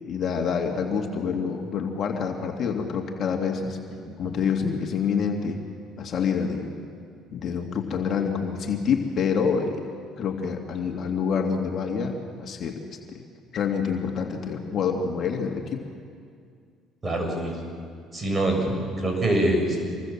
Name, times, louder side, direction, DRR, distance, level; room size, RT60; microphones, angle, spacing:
voice 1, 0.0-3.8 4.2-5.6 6.0-6.8 7.3-9.8 10.2-12.8 13.1-13.2 13.5-15.8, left 6 dB, 55° left, 2 dB, 2.5 m, -27 dB
voice 2, 17.0-17.6 18.1-19.8, right 1 dB, 30° right, 2 dB, 7.3 m, -25 dB
26.5 x 22.5 x 7.4 m, 2.2 s
supercardioid pair, 85°, 0 cm